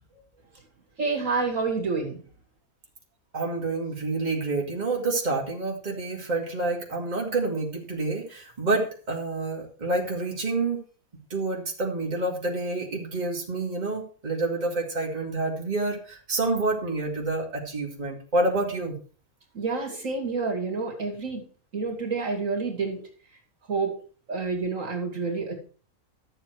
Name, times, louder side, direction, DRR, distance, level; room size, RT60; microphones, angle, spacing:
voice 1, 1.0-2.2 19.5-21.4 21.7-23.0 23.7-23.9 24.3-25.5, right 4 dB, 60° right, 1 dB, 2.7 m, -28 dB
voice 2, 3.3-10.8 11.3-18.9, right 2 dB, 30° right, -1 dB, 2.3 m, -28 dB
12.5 x 7.5 x 4.6 m, 0.41 s
omnidirectional pair, 1.5 m